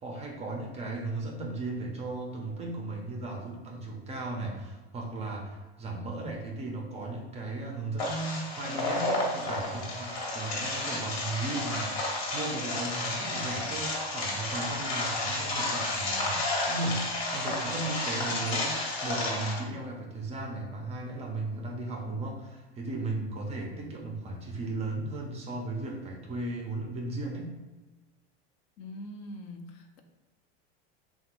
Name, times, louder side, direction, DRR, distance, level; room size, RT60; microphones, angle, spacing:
voice 1, 0.0-27.5, right 2 dB, 20° right, 1 dB, 0.4 m, -36 dB
sound 1, 8.0-19.6, left 2 dB, 75° left, 1.1 m, -31 dB
voice 2, 28.8-30.0, left 1 dB, 55° left, 5 dB, 0.5 m, -43 dB
3.1 x 2.2 x 2.9 m, 1.2 s
supercardioid pair, 120°, 31 cm